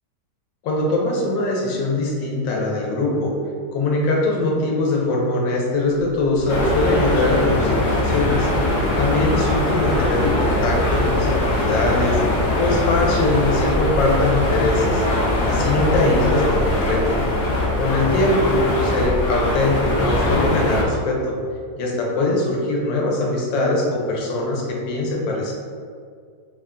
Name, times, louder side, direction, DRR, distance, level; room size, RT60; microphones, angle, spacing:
voice 1, 0.6-3.4 3.7-8.5 9.0-15.0 15.4-17.2 17.8-21.4 21.8-25.5, left 2 dB, 90° left, -1 dB, 1.4 m, -22 dB
Livestock farm animals working animals, 5.8-17.3, left 3 dB, 80° right, 1.7 m, -36 dB
Musical instrument, 6.3-21.1, left 4 dB, 60° right, 0.7 m, -30 dB
sound 1, 6.5-20.8, left 1 dB, 65° left, 1.2 m, -22 dB
4.0 x 2.2 x 3.6 m, 2.1 s
omnidirectional pair, 2.0 m